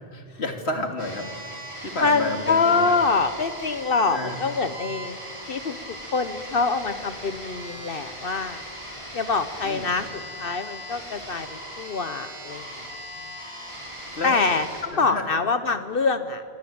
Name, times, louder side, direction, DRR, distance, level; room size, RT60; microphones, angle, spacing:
voice 1, 0.1-1.6 1.8-3.0 4.1-4.4 9.6-9.9 14.1-14.5 14.9-15.3, left 2 dB, 90° left, 5 dB, 3.0 m, -31 dB
sound 1, 1.0-14.8, equal, 25° right, 6.5 m, -39 dB
voice 2, 2.0-5.2 5.5-8.6 9.1-12.9 14.2-16.4, left 4 dB, 60° left, 11 dB, 1.2 m, -25 dB
28.0 x 24.5 x 8.7 m, 2.4 s
omnidirectional pair, 1.1 m